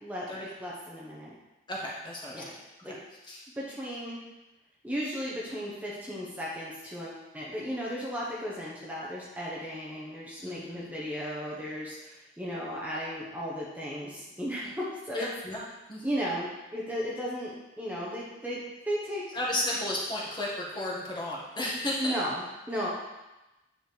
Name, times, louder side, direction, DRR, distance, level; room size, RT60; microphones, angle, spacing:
voice 1, 0.0-1.3 2.3-2.5 2.8-3.0 3.6-4.2 4.8-15.3 16.0-19.2 22.0-22.9, equal, 10° right, -6 dB, 0.9 m, -35 dB
voice 2, 1.7-2.4 3.3-3.4 10.4-10.9 14.6-14.7 15.1-15.6 15.9-16.0 19.3-22.1 22.8-22.9, left 1 dB, 25° left, -4 dB, 1.4 m, -33 dB
9.1 x 5.0 x 3.2 m, 1.0 s
head